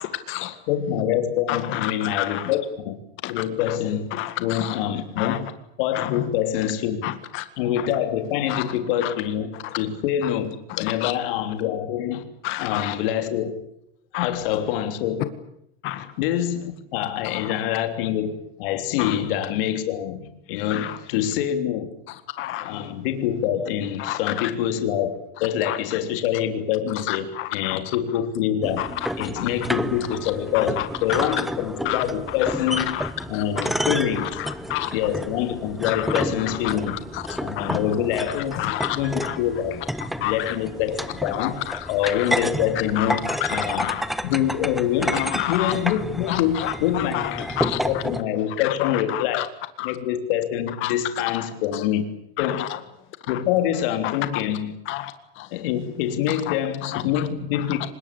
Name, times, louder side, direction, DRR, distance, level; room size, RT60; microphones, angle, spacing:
voice 1, 0.0-0.5 1.5-2.5 3.2-3.4 4.1-4.8 5.2-5.4 5.9-6.1 7.0-7.4 8.5-8.6 9.0-9.1 9.6-9.8 10.8-11.1 12.4-12.9 14.1-14.3 15.8-16.1 17.3-17.4 19.0-19.1 20.7-21.0 22.4-22.7 24.0-24.5 25.7-25.8 27.1-27.8 28.8-29.1 29.4-29.5 30.5-31.2 31.9-32.0 32.8-33.1 33.3-33.7 34.2-34.9 35.9-36.0 36.6-37.8 38.5-39.0 39.2-39.4 40.2-40.5 41.4-42.3 43.0-44.0 45.1-45.7 46.3-47.3 47.6-47.8 48.6-49.4 49.8-49.9 50.8-50.9 52.4-52.7 54.0-54.1 54.9-55.1 55.4-55.5 56.5-56.6 56.8-57.0 57.8-57.9, left 15 dB, 40° left, 1.9 m, -29 dB
voice 2, 0.7-3.0 3.3-4.1 4.4-5.5 5.8-7.1 7.6-12.3 12.6-13.6 14.1-15.3 16.0-21.9 22.6-34.4 34.9-37.0 37.4-39.8 40.2-43.9 44.2-49.5 49.8-52.1 52.4-52.7 53.3-54.8 55.5-57.9, left 10 dB, 65° left, 3.3 m, -25 dB
sound 1, 28.6-48.2, equal, ahead, 0.9 m, -30 dB
25.0 x 21.0 x 8.5 m
supercardioid pair, 140°, 30 cm